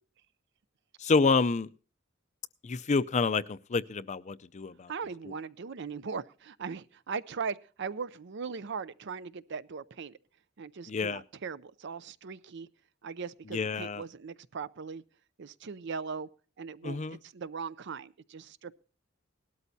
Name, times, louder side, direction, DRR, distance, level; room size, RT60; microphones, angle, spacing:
voice 1, 1.0-1.7 2.6-4.9 10.9-11.2 13.5-14.0 16.8-17.2, left 4 dB, 35° left, 16 dB, 0.5 m, -28 dB
voice 2, 4.9-10.2 10.6-12.7 13.0-15.0 15.4-16.3 16.6-18.7, right 5 dB, 60° right, 17 dB, 0.5 m, -39 dB
18.5 x 12.5 x 2.7 m, 0.38 s
head